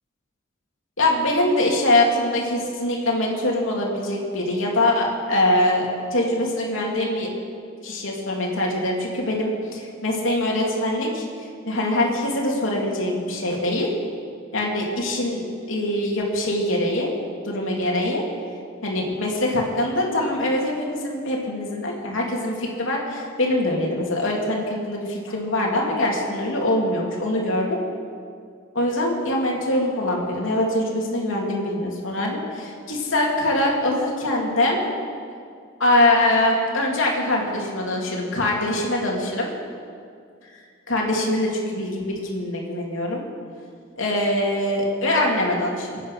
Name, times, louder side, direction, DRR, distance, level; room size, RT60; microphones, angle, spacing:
voice 1, 1.0-7.3 7.8-11.2 11.7-13.9 14.5-17.1 17.4-18.2 18.8-27.8 28.7-34.8 35.8-39.5 40.9-43.2 44.0-46.0, left 1 dB, 75° left, -1 dB, 3.0 m, -23 dB
24.5 x 9.1 x 5.9 m, 2.2 s
head